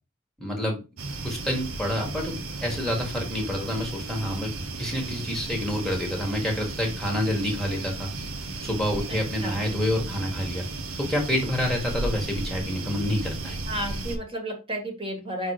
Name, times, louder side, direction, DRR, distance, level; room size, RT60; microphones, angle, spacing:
voice 1, 0.4-0.8 1.2-8.1 8.6-10.7 11.0-13.6, left 1 dB, ahead, 0 dB, 1.6 m, -28 dB
sound 1, 1.0-14.2, right 2 dB, 90° right, 1.0 m, -35 dB
voice 2, 9.1-9.6 13.7-15.5, right 1 dB, 25° right, 2 dB, 1.7 m, -32 dB
5.3 x 3.9 x 4.9 m, 0.29 s
head